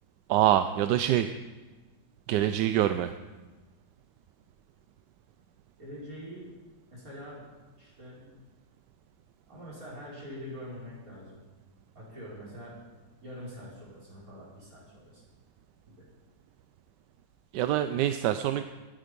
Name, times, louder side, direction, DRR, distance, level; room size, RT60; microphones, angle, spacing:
voice 1, 0.3-1.3 2.3-3.1 17.5-18.6, right 12 dB, 75° right, 9 dB, 1.1 m, -25 dB
voice 2, 5.8-6.5 6.9-7.5 7.8-8.3 9.5-11.4 11.9-12.8 13.2-15.2 15.9-16.1, equal, 45° right, -7 dB, 5.8 m, -44 dB
20.0 x 9.1 x 5.3 m, 1.2 s
omnidirectional pair, 2.0 m